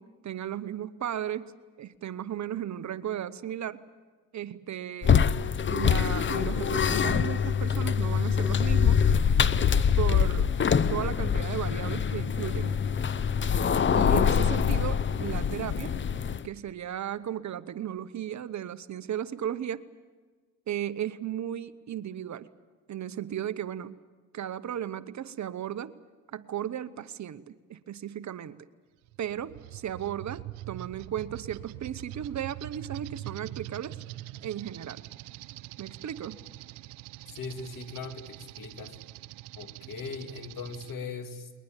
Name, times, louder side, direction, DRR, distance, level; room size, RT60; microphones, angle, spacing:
voice 1, 0.0-1.5 1.8-3.8 4.3-5.2 5.6-9.0 10.0-10.5 10.9-12.7 13.9-15.9 16.4-19.9 20.7-22.5 22.9-24.0 24.3-25.9 26.3-28.6 29.2-34.0 34.4-35.0 35.8-36.4, right 10 dB, 45° right, 13 dB, 1.0 m, -35 dB
sound 1, 5.0-16.5, left 7 dB, 30° left, 0.7 m, -24 dB
sound 2, 29.1-40.9, right 16 dB, 90° right, 0.8 m, -43 dB
voice 2, 37.3-39.0 39.6-41.5, left 4 dB, 55° left, 8 dB, 2.4 m, -39 dB
21.5 x 21.0 x 9.1 m, 1.4 s
cardioid pair, 90°, 40 cm